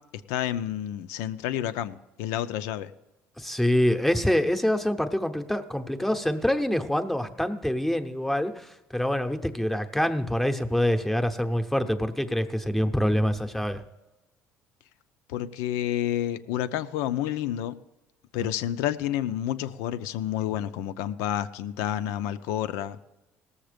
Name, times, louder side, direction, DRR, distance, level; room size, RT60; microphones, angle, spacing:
voice 1, 0.3-2.9 15.3-17.7 18.3-23.0, left 11 dB, 90° left, 12 dB, 0.6 m, -29 dB
voice 2, 3.4-13.8, left 1 dB, 5° left, 7 dB, 0.8 m, -26 dB
18.0 x 7.2 x 5.1 m, 1.0 s
cardioid pair, 120°, 5 cm